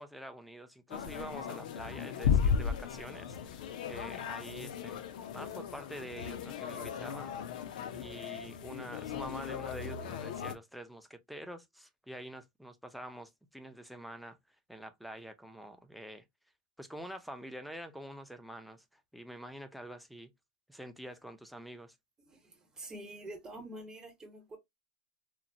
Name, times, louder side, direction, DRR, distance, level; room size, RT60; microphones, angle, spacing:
voice 1, 0.0-5.0 5.3-7.3 7.9-16.2 16.8-20.3 20.7-22.0, right 1 dB, ahead, 0.4 m, -46 dB
sound 1, 0.9-10.5, left 7 dB, 75° left, 0.5 m, -35 dB
voice 2, 22.2-24.6, right 1 dB, 15° right, 0.9 m, -47 dB
2.9 x 2.1 x 2.6 m
supercardioid pair, 125°, 4 cm